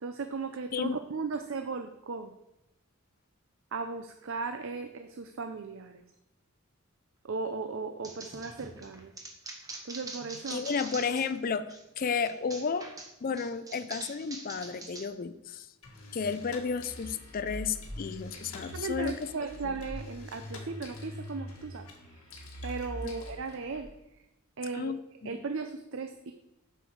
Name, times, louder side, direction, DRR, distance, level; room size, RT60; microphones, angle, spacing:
voice 1, 0.0-2.3 3.7-6.0 7.2-9.1 9.8-10.6 18.7-22.2 22.6-23.9 24.6-25.0 25.2-26.3, right 4 dB, 60° right, 7 dB, 0.5 m, -37 dB
sound 1, 8.0-11.4 11.7-15.1, right 2 dB, 15° right, 1.0 m, -44 dB
voice 2, 10.5-12.9 13.2-15.7 16.1-19.3 19.6-19.8 23.0-23.2 24.7-25.4, left 5 dB, 40° left, 11 dB, 0.4 m, -32 dB
sound 2, 15.8-23.8, left 1 dB, 80° left, 1.8 m, -43 dB
7.7 x 6.8 x 4.7 m, 0.90 s
head